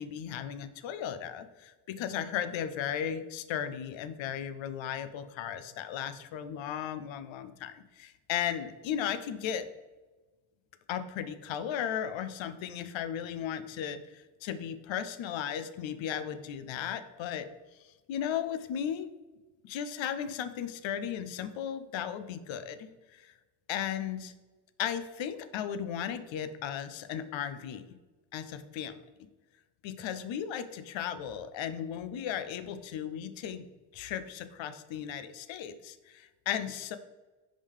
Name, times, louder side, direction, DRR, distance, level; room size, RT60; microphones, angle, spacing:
voice 1, 0.0-9.7 10.9-17.5 18.1-19.1 19.6-23.3 23.7-24.3 24.8-27.8 28.3-28.9 29.8-33.7 33.9-37.0, left 9 dB, 70° left, 11 dB, 0.7 m, -36 dB
5.5 x 5.0 x 3.5 m, 1.2 s
cardioid pair, 90°, 48 cm